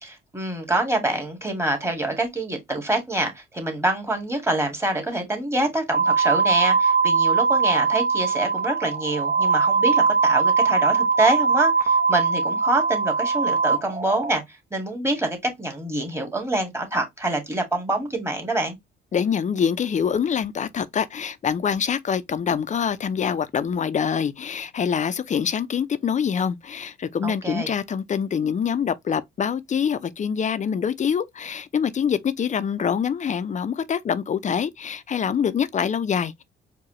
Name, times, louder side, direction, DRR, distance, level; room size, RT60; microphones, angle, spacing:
voice 1, 0.0-14.4 14.7-18.8 27.2-27.7, right 2 dB, 15° right, 1.8 m, -26 dB
sound 1, 5.9-14.4, right 5 dB, 45° right, 1.1 m, -21 dB
voice 2, 19.1-36.4, left 7 dB, 40° left, 0.5 m, -25 dB
4.8 x 2.3 x 3.0 m
cardioid pair, 90°, 20 cm